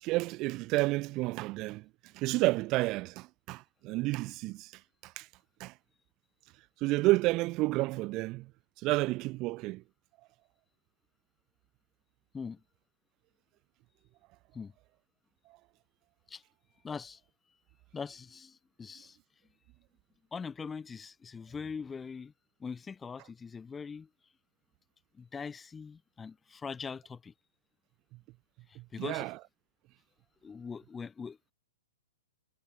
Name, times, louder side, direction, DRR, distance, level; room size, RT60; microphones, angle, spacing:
voice 1, 0.0-1.9 2.1-4.7 5.0-5.3 5.6-5.7 6.8-8.5 8.8-9.8 28.8-29.4, right 21 dB, 30° right, 0.5 m, -30 dB
voice 2, 16.8-17.2 17.9-19.2 20.3-22.3 22.6-24.1 25.1-27.3 28.7-29.3 30.4-31.5, left 5 dB, 10° left, 0.6 m, -42 dB
figure-of-eight pair, 110°, 0 cm